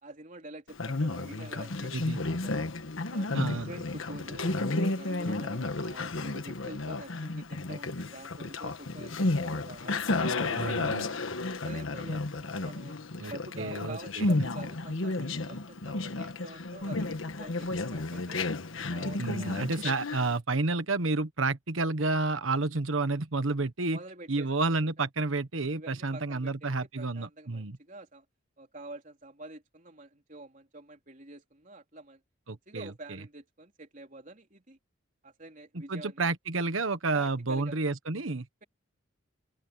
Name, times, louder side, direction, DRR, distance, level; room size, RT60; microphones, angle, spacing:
voice 1, 0.0-2.5 3.1-11.2 11.5-13.0 13.3-18.4 18.9-20.0 23.9-24.9 25.7-28.3 28.6-32.2 32.7-34.8 35.2-36.3 37.1-37.8, right 2 dB, 40° right, 3.6 m, -47 dB
Conversation, 0.7-20.4, left 2 dB, 80° left, 1.4 m, -32 dB
voice 2, 1.9-2.2 3.3-3.7 10.5-11.1 13.2-13.3 13.6-14.3 19.2-24.0 24.3-27.8 32.5-33.2 35.7-38.6, right 3 dB, 85° right, 1.3 m, -30 dB
open air
head